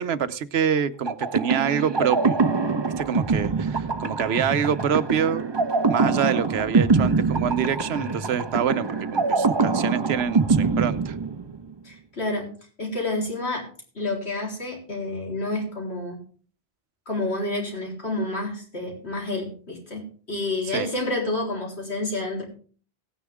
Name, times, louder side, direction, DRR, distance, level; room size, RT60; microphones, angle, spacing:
voice 1, 0.0-2.4 2.8-5.4 5.9-11.2 20.7-20.9, right 8 dB, 75° right, 13 dB, 1.0 m, -26 dB
sound 1, 1.1-11.7, right 4 dB, 25° right, 0.7 m, -24 dB
voice 2, 11.8-12.5 12.8-13.7 13.9-16.2 17.1-22.4, left 2 dB, 80° left, -1 dB, 4.2 m, -29 dB
16.5 x 9.8 x 3.5 m, 0.43 s
omnidirectional pair, 1.1 m